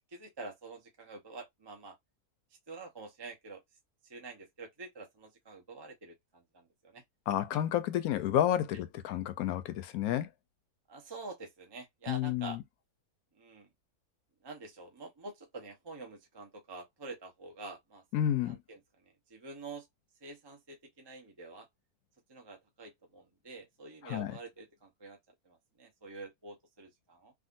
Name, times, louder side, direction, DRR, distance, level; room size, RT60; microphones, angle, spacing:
voice 1, 0.1-2.0 2.7-3.6 4.1-7.0 7.5-7.6 10.9-12.6 13.4-13.7 14.4-18.0 18.4-18.8 19.3-19.9 20.2-21.7 22.3-25.2 25.4-27.3, right 3 dB, 20° right, 0.7 m, -47 dB
voice 2, 7.3-10.3 12.1-12.6 18.1-18.6 24.0-24.3, left 11 dB, 75° left, 1.1 m, -30 dB
3.7 x 2.4 x 2.5 m
omnidirectional pair, 1.6 m